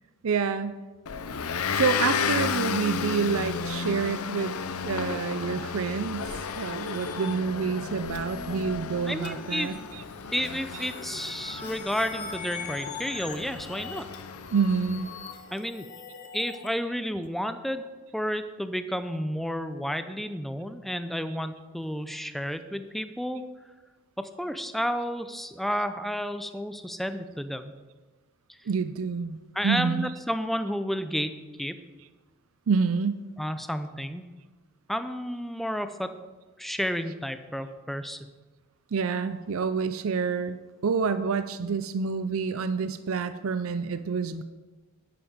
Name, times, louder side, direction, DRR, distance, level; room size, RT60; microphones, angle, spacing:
voice 1, 0.2-0.8 1.7-4.5 4.8-10.0 14.5-15.1 28.7-29.4 29.6-30.1 32.7-33.2 38.9-40.6 40.8-44.4, right 5 dB, 65° right, 11 dB, 0.5 m, -28 dB
Motor vehicle (road) / Engine, 1.1-15.3, left 6 dB, 80° left, 0.6 m, -33 dB
sound 1, 6.0-16.7, left 5 dB, 35° left, 1.2 m, -43 dB
voice 2, 9.1-9.8 10.3-14.0 15.5-15.9 16.3-17.8 18.1-23.4 24.2-27.7 29.5-31.7 33.4-34.2 34.9-36.1 36.6-38.3, equal, ahead, 9 dB, 0.5 m, -31 dB
10.0 x 10.0 x 5.1 m, 1.3 s
head